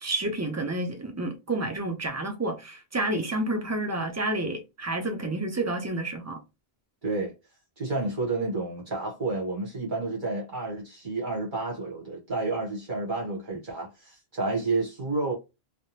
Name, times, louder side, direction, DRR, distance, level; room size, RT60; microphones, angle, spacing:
voice 1, 0.0-6.4, right 2 dB, 25° right, 0.4 m, -30 dB
voice 2, 7.0-7.3 7.8-15.3, right 3 dB, 55° right, 1.1 m, -30 dB
3.3 x 2.1 x 2.7 m
omnidirectional pair, 1.1 m